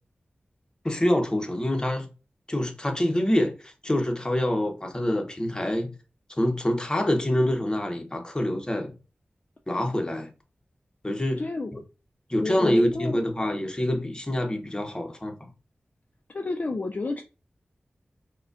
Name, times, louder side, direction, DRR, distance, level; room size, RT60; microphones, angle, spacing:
voice 1, 0.8-2.1 2.5-5.9 6.3-8.9 9.7-10.3 11.0-11.4 12.3-15.5, left 1 dB, 20° left, 0.7 m, -26 dB
voice 2, 11.4-11.7 12.4-13.2 16.3-17.2, left 3 dB, 45° left, 0.4 m, -30 dB
4.8 x 2.2 x 2.4 m
wide cardioid pair, 75°, 4 cm